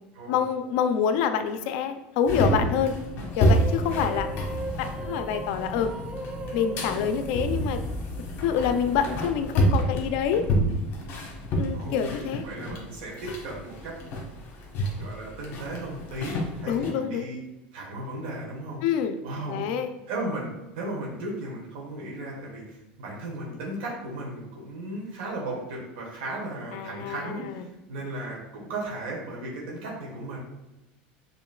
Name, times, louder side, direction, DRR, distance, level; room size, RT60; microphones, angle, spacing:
voice 1, 0.3-2.9 3.4-4.3 4.8-5.9 6.5-7.8 8.4-10.5 11.6-12.4 16.7-17.3 18.8-19.2 19.5-19.9 26.7-27.6, left 7 dB, 70° left, 9 dB, 0.4 m, -26 dB
sound 1, 2.2-16.9, equal, 50° left, 1.0 m, -29 dB
sound 2, 3.4-8.1, right 1 dB, 20° right, 0.5 m, -38 dB
voice 2, 11.7-13.9 15.0-17.4 17.7-18.8 19.2-19.7 20.1-30.4, right 1 dB, 85° right, -4 dB, 1.3 m, -36 dB
5.1 x 3.0 x 2.3 m, 1.0 s
supercardioid pair, 125°, 5 cm